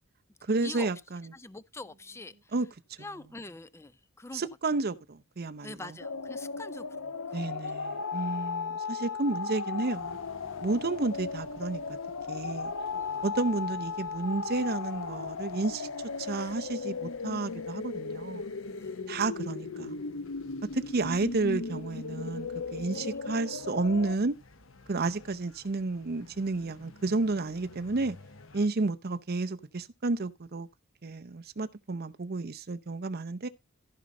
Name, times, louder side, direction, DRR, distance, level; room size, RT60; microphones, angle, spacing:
voice 1, 0.4-1.3 2.5-2.7 4.3-5.9 7.3-10.2 10.6-11.8 12.3-12.7 13.2-15.9 16.2-18.4 19.1-19.9 20.7-24.4 24.9-28.2 28.5-30.7 31.0-33.5, right 3 dB, 50° right, 0.7 m, -31 dB
voice 2, 1.3-2.5 3.0-4.5 5.6-7.6 12.9-13.2 18.8-18.9 20.7-20.8 22.9-23.2 25.0-25.1, left 2 dB, 15° left, 0.5 m, -45 dB
sound 1, 6.0-24.2, left 4 dB, 85° left, 0.8 m, -36 dB
sound 2, 9.9-28.7, left 3 dB, 70° left, 1.1 m, -55 dB
14.5 x 5.3 x 3.8 m
head